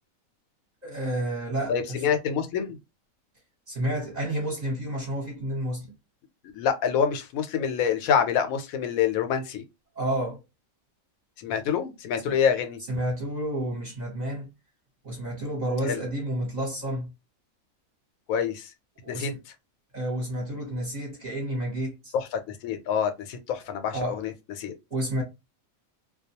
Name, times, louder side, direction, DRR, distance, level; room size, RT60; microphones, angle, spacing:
voice 1, 0.8-2.0 3.7-5.9 9.9-10.4 12.2-12.4 12.9-14.5 15.0-17.1 19.0-19.3 19.9-22.1 23.9-24.2 24.9-25.2, right 1 dB, 35° right, 0.8 m, -30 dB
voice 2, 1.7-2.8 6.5-9.6 11.4-12.8 15.9-16.0 18.3-18.7 19.1-19.3 22.1-24.3 24.6-24.7, left 7 dB, 80° left, 1.0 m, -26 dB
2.3 x 2.2 x 2.7 m
omnidirectional pair, 1.5 m